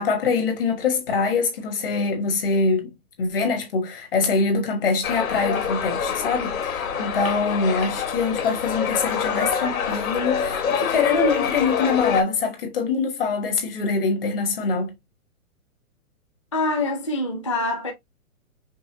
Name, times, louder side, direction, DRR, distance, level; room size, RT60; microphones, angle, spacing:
voice 1, 0.0-14.9, left 4 dB, 40° left, 1.3 m, -24 dB
sound 1, 5.0-12.2, left 7 dB, 70° left, 2.1 m, -26 dB
voice 2, 16.5-17.9, left 2 dB, 20° left, 0.5 m, -25 dB
5.4 x 3.3 x 2.8 m
hypercardioid pair, 170°, 44 cm